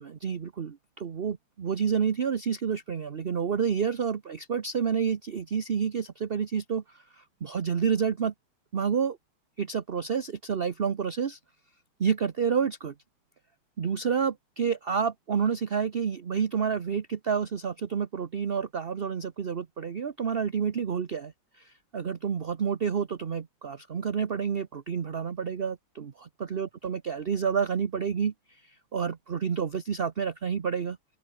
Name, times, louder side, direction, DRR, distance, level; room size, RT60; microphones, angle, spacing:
voice 1, 0.0-8.3 8.7-9.2 9.6-11.4 12.0-12.9 13.8-31.0, right 6 dB, 45° right, 0.8 m, -29 dB
open air
omnidirectional pair, 2.3 m